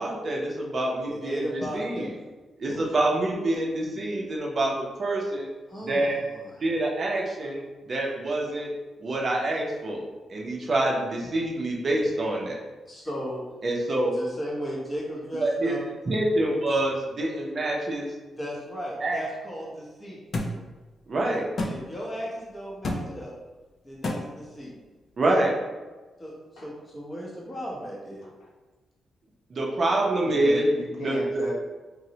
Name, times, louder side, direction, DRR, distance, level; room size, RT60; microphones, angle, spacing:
voice 1, 0.0-1.4 1.7-2.1 2.6-4.7 5.0-5.5 5.9-6.2 6.6-7.6 7.9-8.7 9.0-10.0 10.3-12.6 13.6-14.1 15.4-15.7 16.1-18.1 19.0-19.2 21.1-21.4 25.2-25.5 29.5-30.7 31.0-31.4, right 1 dB, 35° right, -2 dB, 0.5 m, -26 dB
voice 2, 1.0-2.2 2.7-3.1 5.7-6.7 12.9-13.4 14.1-15.8 16.7-16.8 18.3-20.2 21.3-23.3 23.8-24.7 26.2-28.2, equal, 20° left, -4 dB, 0.7 m, -36 dB
sound 1, 20.3-20.5 21.6-21.7 22.8-23.0 24.0-24.2, left 2 dB, 40° left, 0.3 m, -27 dB
voice 3, 30.2-31.5, left 1 dB, 85° left, -4 dB, 0.9 m, -35 dB
3.9 x 2.0 x 2.7 m, 1.2 s
wide cardioid pair, 175°, 0 cm